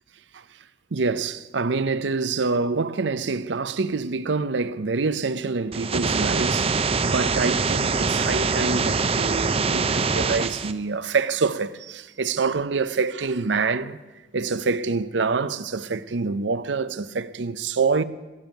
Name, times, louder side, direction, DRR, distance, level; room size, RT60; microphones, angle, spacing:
voice 1, 0.9-6.8 7.0-14.0 14.3-18.0, right 4 dB, 75° right, 0.6 m, -26 dB
sound 1, 5.7-10.7, right 4 dB, 30° right, 0.6 m, -23 dB
21.5 x 7.1 x 9.1 m
head